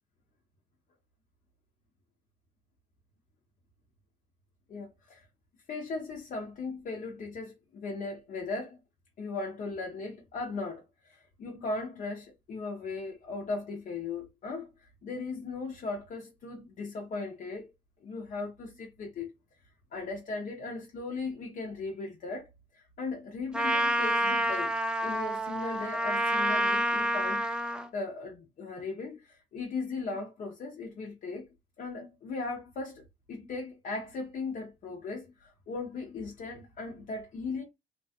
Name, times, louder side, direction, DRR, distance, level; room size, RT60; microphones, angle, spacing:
voice 1, 4.7-5.3 5.7-8.8 9.2-17.7 18.0-19.3 19.9-22.5 22.7-24.7 25.0-27.5 27.9-31.5 31.8-37.6, left 3 dB, 50° left, 0.9 m, -38 dB
Trumpet, 23.5-27.9, right 1 dB, 5° right, 0.4 m, -28 dB
3.0 x 2.2 x 2.8 m
cardioid pair, 110°, 17 cm